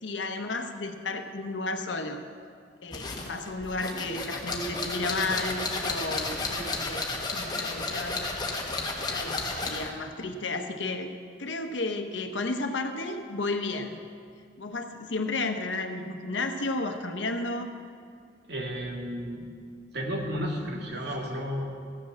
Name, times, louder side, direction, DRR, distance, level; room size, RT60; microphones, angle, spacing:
voice 1, 0.0-2.2 2.8-8.2 9.1-11.1 11.4-14.0 14.6-17.8, left 2 dB, 80° left, 6 dB, 1.0 m, -33 dB
sound 1, 2.9-9.9, left 3 dB, 25° left, 1.4 m, -32 dB
voice 2, 18.5-19.5 19.9-21.7, equal, 65° right, 0 dB, 2.0 m, -32 dB
15.0 x 6.5 x 7.4 m, 2.2 s
head